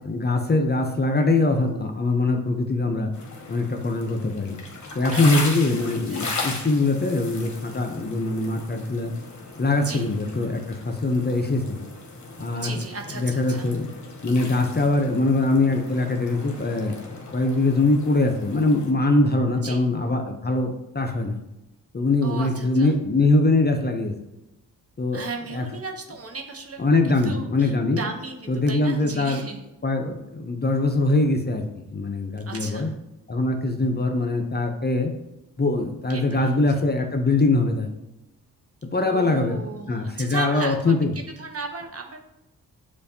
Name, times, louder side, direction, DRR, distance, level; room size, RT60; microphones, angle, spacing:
voice 1, 0.0-3.1 3.5-4.6 4.9-9.1 9.6-11.8 12.4-12.8 13.2-13.9 14.2-17.0 17.3-21.4 21.9-24.1 25.0-25.2 25.5-25.6 26.8-28.0 28.5-29.5 29.8-32.9 33.3-35.1 35.6-37.9 38.9-41.1, left 2 dB, 25° left, 4 dB, 0.7 m, -22 dB
sound 1, 3.1-18.9, left 3 dB, 45° left, 1.1 m, -37 dB
voice 2, 5.1-5.5 5.8-5.9 6.1-6.2 9.8-10.1 12.5-13.7 19.6-19.8 22.2-22.9 25.1-26.8 27.1-29.7 32.5-32.9 36.1-36.7 39.0-40.9 41.3-42.2, right 4 dB, 35° right, 3 dB, 0.8 m, -35 dB
6.4 x 2.6 x 2.7 m, 0.93 s
supercardioid pair, 45°, 40 cm